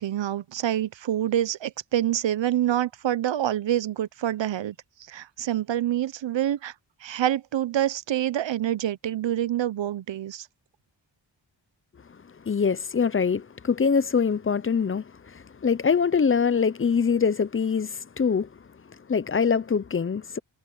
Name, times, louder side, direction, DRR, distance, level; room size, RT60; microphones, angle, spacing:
voice 1, 0.0-4.8 5.1-6.7 7.0-10.5, right 12 dB, 70° right, 0.8 m, -26 dB
voice 2, 12.5-18.5 19.1-20.4, left 6 dB, 30° left, 0.6 m, -24 dB
wide cardioid pair, 105°, 46 cm